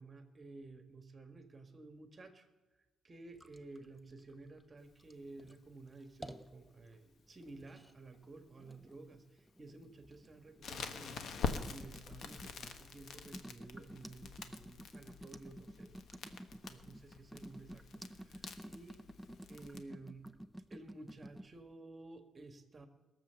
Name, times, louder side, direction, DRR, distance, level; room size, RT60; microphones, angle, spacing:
voice 1, 0.0-2.5 3.0-11.2 11.7-16.0 16.5-19.0 19.5-20.3 20.7-22.9, right 2 dB, 25° right, 7 dB, 1.5 m, -53 dB
sound 1, 3.4-21.5, right 1 dB, ahead, 0.6 m, -53 dB
Crackle, 10.6-19.8, left 5 dB, 65° left, 1.2 m, -45 dB
21.0 x 7.2 x 6.9 m, 1.2 s
cardioid pair, 135°, 0 cm